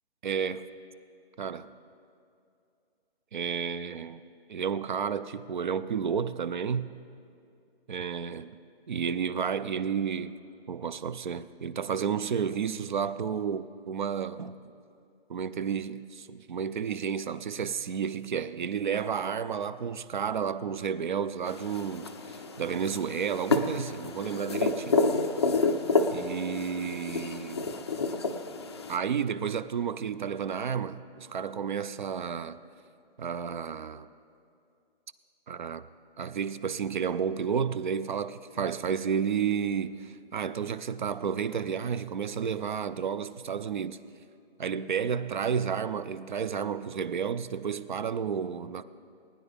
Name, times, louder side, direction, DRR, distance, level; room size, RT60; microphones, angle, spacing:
voice 1, 0.2-0.7 1.4-1.7 3.3-4.2 4.5-6.9 7.9-8.5 8.9-10.4 10.7-14.6 15.3-25.0 26.1-27.7 28.9-32.6 33.2-34.1 35.5-35.9 36.2-44.0 44.6-48.8, right 7 dB, 50° right, 0.4 m, -31 dB
sound 1, 21.5-29.0, left 3 dB, 25° left, 0.4 m, -29 dB
20.0 x 10.0 x 3.4 m
hypercardioid pair, 160°, 31 cm